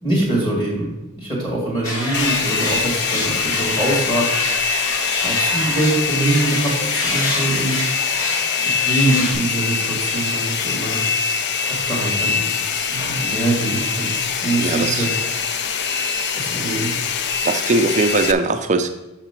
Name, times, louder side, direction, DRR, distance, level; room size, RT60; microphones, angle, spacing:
voice 1, 0.0-0.9 1.2-4.3 5.2-7.8 8.7-11.0 11.6-12.4 12.9-14.1 14.4-15.1 16.3-16.9, right 2 dB, 20° left, -3 dB, 2.1 m, -23 dB
sound 1, 1.8-9.3, left 2 dB, 70° left, 1.8 m, -26 dB
Domestic sounds home sounds, 2.1-18.3, left 6 dB, 50° left, 0.5 m, -23 dB
voice 2, 14.6-15.1 17.4-18.9, right 3 dB, 35° right, 7 dB, 0.4 m, -19 dB
6.0 x 5.8 x 5.7 m, 1.0 s
head